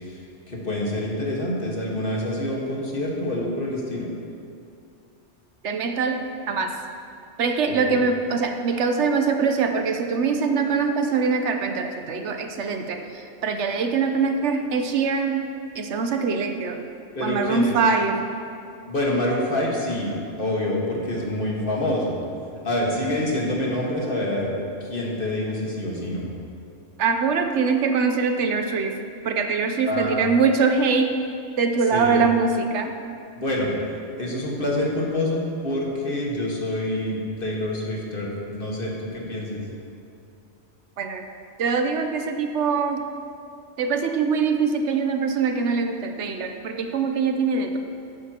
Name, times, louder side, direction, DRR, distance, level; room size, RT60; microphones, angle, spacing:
voice 1, 0.0-4.1 7.9-8.0 17.1-17.7 18.9-22.2 22.6-24.5 24.8-26.2 29.9-30.2 31.9-32.2 33.3-33.7 34.2-39.6, left 1 dB, 50° left, -3 dB, 1.7 m, -26 dB
voice 2, 5.6-6.7 7.4-15.5 15.7-16.8 17.2-18.2 27.0-29.0 29.2-31.1 31.6-32.9 41.0-41.3 41.6-43.0 43.8-47.8, right 5 dB, 75° right, 5 dB, 1.0 m, -23 dB
13.0 x 9.4 x 2.9 m, 2.5 s
omnidirectional pair, 1.2 m